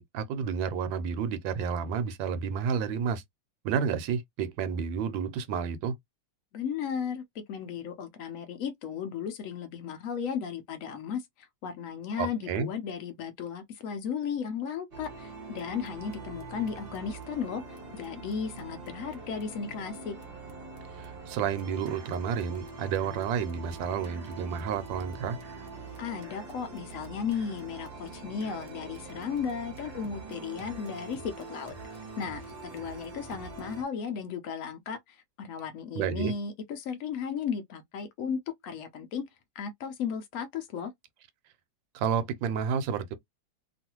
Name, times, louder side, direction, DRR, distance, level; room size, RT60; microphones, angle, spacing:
voice 1, 0.0-3.2 3.6-6.0 12.2-12.7 20.9-25.4 35.9-36.3 41.9-43.1, right 7 dB, 90° right, 1.4 m, -30 dB
voice 2, 6.5-20.2 26.0-31.8 32.2-39.3 39.6-40.9, left 7 dB, 80° left, 0.7 m, -35 dB
sound 1, 14.9-33.8, right 3 dB, 55° right, 0.6 m, -44 dB
3.1 x 2.4 x 2.9 m
omnidirectional pair, 2.1 m